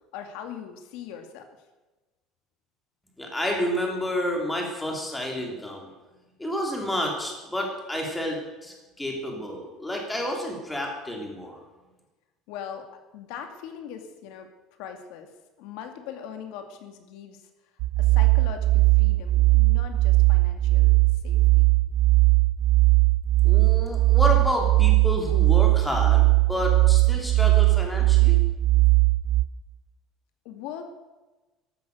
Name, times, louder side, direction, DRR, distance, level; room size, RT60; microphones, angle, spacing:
voice 1, 0.1-1.5 12.5-12.9 13.1-14.5 14.8-15.3 15.6-17.4 18.0-20.9 21.2-21.6 30.4-30.9, left 8 dB, 70° left, 6 dB, 2.3 m, -40 dB
voice 2, 3.2-5.9 6.4-8.4 8.6-11.6 23.4-28.4, left 1 dB, 5° left, 0 dB, 3.1 m, -30 dB
sound 1, 17.8-29.4, right 21 dB, 60° right, 0.7 m, -19 dB
14.5 x 12.0 x 6.6 m, 1.2 s
cardioid pair, 170°, 0 cm